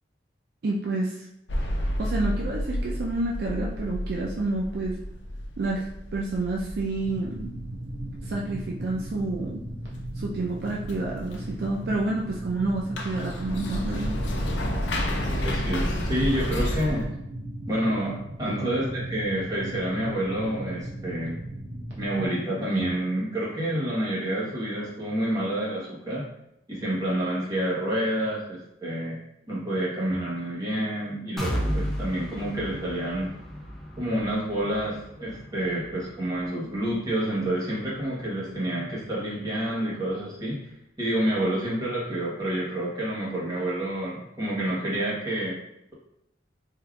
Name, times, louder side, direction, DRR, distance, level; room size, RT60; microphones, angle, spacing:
voice 1, 0.6-1.2 2.0-5.0 5.6-5.8 6.1-7.6 8.2-9.6 10.2-14.2, right 2 dB, 60° right, -2 dB, 0.4 m, -29 dB
sound 1, 1.5-17.1, equal, 75° left, 0.5 m, -31 dB
sound 2, 7.0-22.3, right 1 dB, 75° right, 0.9 m, -38 dB
voice 2, 15.4-17.1 17.7-21.4 22.0-26.2 26.7-29.2 29.5-33.3 34.0-40.6 41.0-45.6, right 1 dB, 20° right, -6 dB, 1.0 m, -28 dB
sound 3, 31.4-39.2 39.6-39.7 40.1-40.2, equal, ahead, 0.4 m, -35 dB
3.5 x 2.5 x 2.3 m, 0.83 s
head